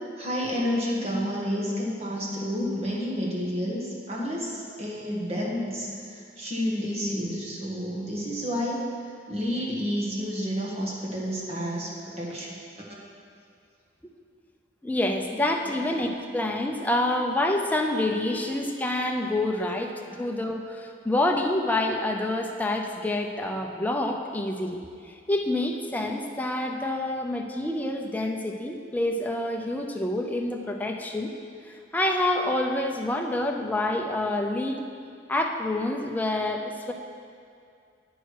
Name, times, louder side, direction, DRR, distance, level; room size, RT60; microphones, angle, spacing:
voice 1, 0.2-8.8 9.3-12.6 15.8-15.9, equal, 35° right, -4 dB, 1.6 m, -30 dB
voice 2, 14.8-31.3 31.7-34.8 35.3-36.9, left 1 dB, 10° left, 1 dB, 0.6 m, -27 dB
sound 1, 18.2-19.0, equal, 90° right, 1.7 m, -46 dB
9.0 x 6.3 x 4.7 m, 2.3 s
head